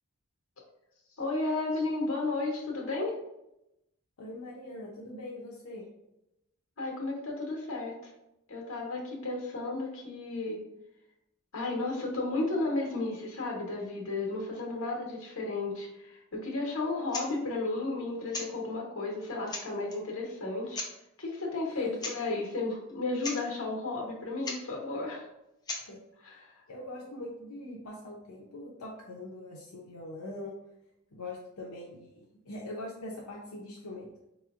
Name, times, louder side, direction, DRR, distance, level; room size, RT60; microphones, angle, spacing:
voice 1, 1.2-3.1 6.8-8.0 8.5-10.6 11.5-20.8 21.2-25.3 26.2-26.6, left 2 dB, 65° left, -1 dB, 1.1 m, -33 dB
voice 2, 4.2-5.9 21.8-22.0 25.7-26.0 26.7-30.5 31.1-34.2, left 1 dB, 85° left, -3 dB, 0.6 m, -42 dB
sound 1, 17.1-17.3 18.3-18.5 19.1-19.2 19.5-20.0 20.7-20.9 22.0-22.2 22.4-22.5 22.9-23.0 23.2-23.4 24.4-24.6 25.7-25.9, left 3 dB, 20° left, 0.5 m, -37 dB
4.2 x 3.0 x 2.4 m, 0.88 s
head